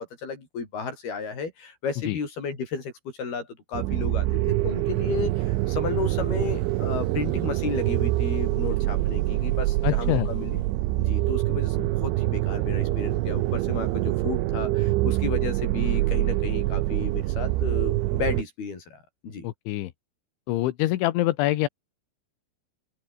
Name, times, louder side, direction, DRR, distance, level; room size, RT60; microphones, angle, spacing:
voice 1, 0.2-2.9 3.2-10.6 11.0-19.4, left 5 dB, 50° left, 8.0 m, -33 dB
sound 1, 3.7-18.4, right 17 dB, 75° right, 3.2 m, -25 dB
voice 2, 9.8-10.3 19.4-19.9 20.5-21.7, left 16 dB, 75° left, 3.4 m, -25 dB
open air
omnidirectional pair, 5.9 m